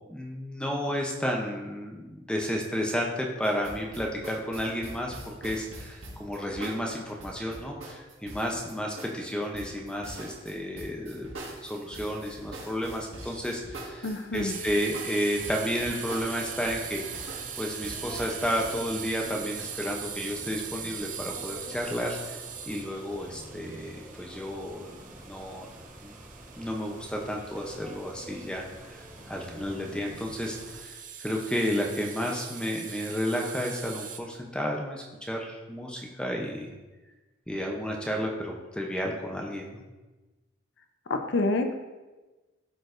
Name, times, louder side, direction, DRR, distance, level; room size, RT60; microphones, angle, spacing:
voice 1, 0.1-11.3 11.6-14.1 14.3-17.1 17.6-25.7 26.0-26.2 26.5-36.7 37.5-39.8, equal, 5° left, 0 dB, 0.6 m, -32 dB
sound 1, 3.4-18.7, right 1 dB, 90° right, 1.6 m, -43 dB
voice 2, 14.0-14.6 41.1-41.8, left 2 dB, 65° left, 6 dB, 0.5 m, -28 dB
sound 2, 14.5-34.2, right 8 dB, 40° right, 0.5 m, -41 dB
sound 3, 15.3-30.8, right 1 dB, 15° right, 1.1 m, -47 dB
12.0 x 4.5 x 2.5 m, 1.2 s
head